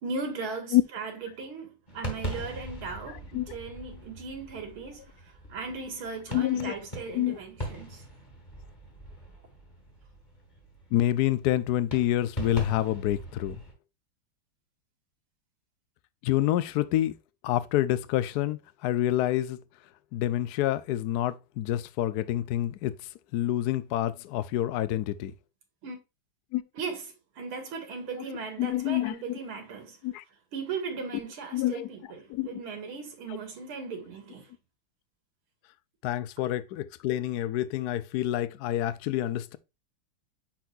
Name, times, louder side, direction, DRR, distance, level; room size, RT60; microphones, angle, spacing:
voice 1, 0.0-8.0 25.8-26.0 26.7-30.0 30.5-34.5, right 4 dB, 75° right, 2.7 m, -38 dB
sound 1, 1.9-13.7, right 1 dB, 20° left, 2.3 m, -41 dB
voice 2, 6.3-6.7 7.1-7.4 10.9-13.6 16.2-17.1 17.4-19.6 20.1-22.9 23.3-25.3 26.5-26.6 28.6-29.1 30.0-30.2 31.5-31.9 32.3-32.6 36.0-39.6, left 13 dB, 75° left, 0.9 m, -27 dB
10.0 x 4.1 x 2.5 m
omnidirectional pair, 2.4 m